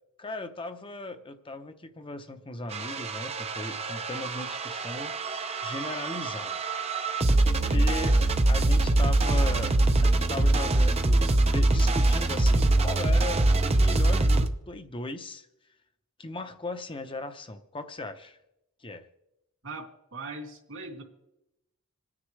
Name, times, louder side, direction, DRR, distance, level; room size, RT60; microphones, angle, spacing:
voice 1, 0.2-6.6 7.4-8.2 8.5-15.5 16.2-18.4 18.8-19.1, left 2 dB, 25° left, 8 dB, 0.8 m, -38 dB
sound 1, 2.7-14.5, right 2 dB, 30° right, 0.6 m, -24 dB
voice 2, 19.6-21.0, right 3 dB, 70° right, 0 dB, 2.9 m, -40 dB
27.0 x 9.7 x 3.3 m, 0.91 s
head